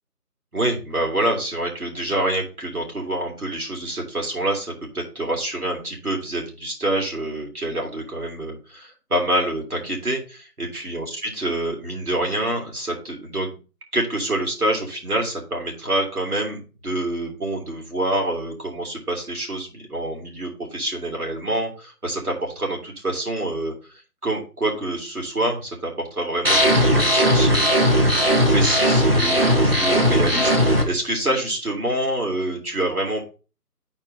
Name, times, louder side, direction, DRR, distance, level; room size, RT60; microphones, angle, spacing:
voice 1, 0.5-13.5 13.9-23.7 24.2-33.2, right 1 dB, 65° right, 0 dB, 3.1 m, -26 dB
sound 1, 26.5-30.8, equal, 40° right, 1.2 m, -18 dB
11.0 x 4.5 x 3.8 m, 0.33 s
figure-of-eight pair, 170°, 47 cm